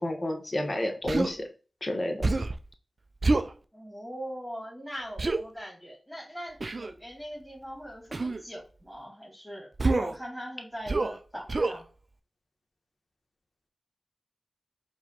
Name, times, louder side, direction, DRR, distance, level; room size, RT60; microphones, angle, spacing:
voice 1, 0.0-1.4 1.8-2.3, left 1 dB, 45° left, 3 dB, 1.1 m, -30 dB
Human voice, 1.1-1.3 2.2-2.6 3.2-3.5 5.2-5.4 6.6-6.9 8.1-8.4 9.8-10.2 10.9-11.2 11.5-11.8, right 3 dB, 50° right, 0.4 m, -26 dB
voice 2, 3.7-11.8, equal, 5° right, -3 dB, 1.8 m, -41 dB
4.8 x 2.2 x 4.2 m, 0.36 s
cardioid pair, 40°, 0 cm